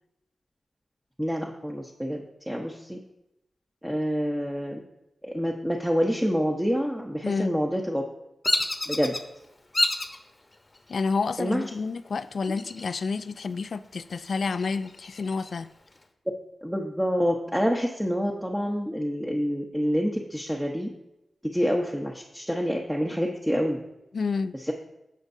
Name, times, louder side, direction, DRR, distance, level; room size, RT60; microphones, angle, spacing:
voice 1, 1.2-3.0 3.8-4.8 5.2-8.0 8.9-9.1 11.4-11.6 16.6-20.9 21.4-23.8 24.5-24.7, equal, 5° right, 0 dB, 0.9 m, -27 dB
voice 2, 7.2-7.6 10.9-15.7 24.1-24.6, left 4 dB, 70° left, 13 dB, 0.4 m, -29 dB
Bird vocalization bird call bird song, 8.4-9.2 9.7-10.2 10.7-11.3 12.4-13.2 13.5-13.6 14.1-15.5, left 2 dB, 35° left, 1.0 m, -28 dB
15.0 x 5.2 x 2.7 m, 0.90 s
cardioid pair, 50°, 0 cm